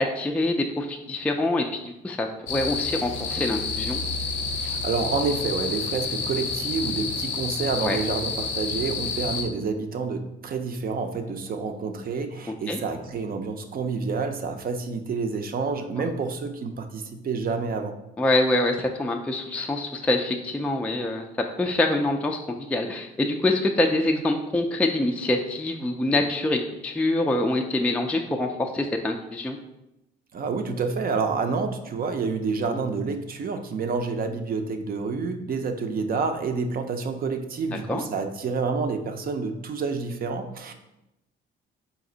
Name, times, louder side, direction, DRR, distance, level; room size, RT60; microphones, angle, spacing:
voice 1, 0.0-4.0 7.8-8.0 12.7-12.8 16.0-16.1 18.2-21.3 21.6-29.6 32.7-32.8 37.9-38.0, left 2 dB, 5° left, 3 dB, 0.3 m, -25 dB
sound 1, 2.5-9.4, left 4 dB, 80° left, 0.6 m, -29 dB
voice 2, 4.6-17.9 30.3-40.7, right 4 dB, 45° right, 6 dB, 0.5 m, -28 dB
4.1 x 2.6 x 3.8 m, 0.89 s
cardioid pair, 90°, 20 cm